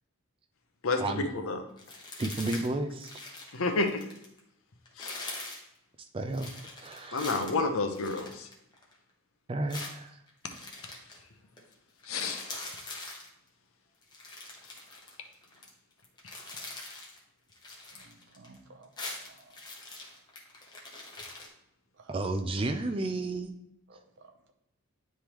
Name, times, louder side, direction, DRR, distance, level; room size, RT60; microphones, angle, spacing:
sound 1, 1.8-2.7 3.0-4.4 4.9-5.7 6.3-9.0 9.7-11.2 11.6-11.7 12.0-13.3 14.0-15.7 16.0-17.2 17.5-18.6 18.8-21.5, left 2 dB, 20° left, 1.1 m, -43 dB
voice 1, 2.2-3.1 6.1-7.4 9.5-10.2 22.1-23.5, right 2 dB, 25° right, 6 dB, 0.4 m, -32 dB
voice 2, 3.5-4.0 5.0-5.2 7.1-8.5 12.1-12.5, left 3 dB, 65° left, 5 dB, 0.7 m, -29 dB
voice 3, 17.9-19.6 22.0-22.1 23.9-24.5, right 2 dB, 55° right, 5 dB, 0.7 m, -56 dB
9.7 x 3.5 x 3.0 m, 0.82 s
head